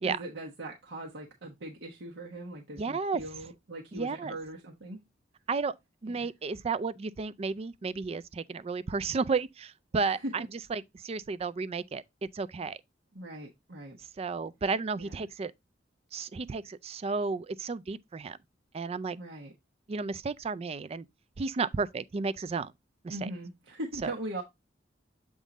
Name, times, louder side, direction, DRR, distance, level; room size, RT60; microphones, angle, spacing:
voice 1, 0.0-5.0 6.1-6.3 10.0-10.3 13.1-14.0 15.0-15.2 19.2-19.5 23.1-24.4, right 1 dB, 75° right, 1.1 m, -40 dB
voice 2, 2.8-3.2 3.9-4.3 5.5-5.7 6.0-12.8 14.2-15.5 16.1-18.4 18.7-19.2 19.9-21.0 21.4-22.7 23.0-23.2 24.0-24.1, right 4 dB, 35° right, 0.3 m, -33 dB
7.3 x 3.7 x 3.9 m
head